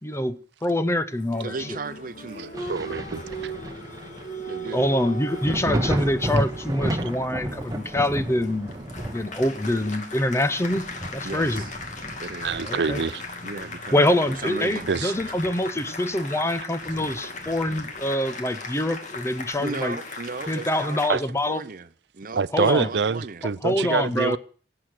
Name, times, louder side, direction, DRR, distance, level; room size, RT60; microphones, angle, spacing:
voice 1, 0.0-1.8 4.7-8.7 9.1-10.8 11.1-11.6 12.7-13.0 13.9-20.0 20.5-21.6 22.5-22.9 23.6-24.4, left 1 dB, 15° left, 0.8 m, -25 dB
Applause, 1.1-21.1, left 1 dB, 45° left, 2.2 m, -38 dB
voice 2, 1.4-2.7 4.5-4.9 11.2-11.7 12.2-13.0 13.4-14.9 19.6-21.9 22.1-23.5, right 3 dB, 50° right, 0.8 m, -36 dB
voice 3, 2.4-3.5 12.4-13.2 14.9-15.1 21.1-21.2 22.3-24.4, right 5 dB, 75° right, 0.5 m, -26 dB
Thunder, 2.5-13.9 14.3-15.8 16.1-16.2 16.8-18.1 19.5-19.6, right 1 dB, 20° right, 1.3 m, -33 dB
18.0 x 7.9 x 6.4 m
head